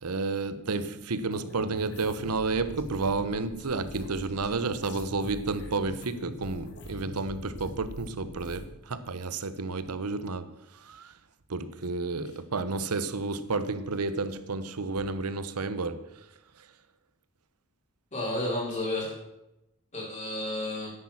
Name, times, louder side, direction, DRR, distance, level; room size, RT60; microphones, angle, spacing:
voice 1, 0.0-10.5 10.8-11.1 11.5-16.0, right 3 dB, 85° right, 0.9 m, -31 dB
sound 1, 1.3-8.7, equal, 55° left, 2.4 m, -43 dB
voice 2, 18.1-19.1 19.9-20.9, left 1 dB, 35° left, 4.3 m, -31 dB
10.5 x 8.7 x 7.2 m
head